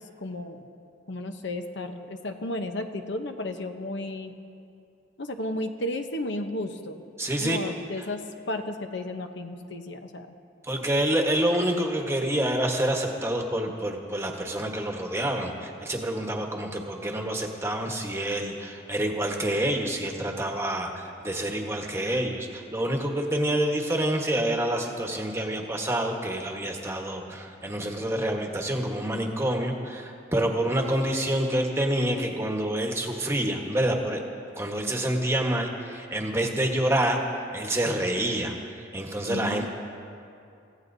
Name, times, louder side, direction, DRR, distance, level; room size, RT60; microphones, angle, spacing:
voice 1, 0.2-0.6 1.1-4.3 5.2-7.0 7.4-10.3 39.3-39.7, left 1 dB, 60° left, 6 dB, 0.9 m, -33 dB
voice 2, 7.2-7.7 8.0-8.1 10.6-34.2 34.5-37.2 37.5-39.7, right 1 dB, 15° right, 1 dB, 1.2 m, -27 dB
29.5 x 16.0 x 2.7 m, 2.5 s
head